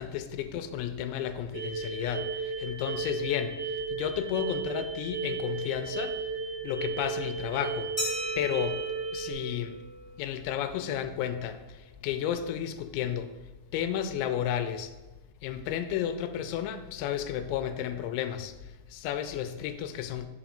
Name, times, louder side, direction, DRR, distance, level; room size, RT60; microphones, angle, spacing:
voice 1, 0.0-6.2 6.6-7.9 8.4-8.8 9.1-9.8 10.2-13.3 13.7-14.9 15.4-20.3, left 10 dB, 85° left, 9 dB, 2.9 m, -32 dB
sound 1, 1.5-9.3, right 4 dB, 90° right, 2.9 m, -34 dB
Glass, 8.0-10.4, equal, 25° right, 1.3 m, -37 dB
5.8 x 5.1 x 4.9 m, 1.1 s
omnidirectional pair, 5.2 m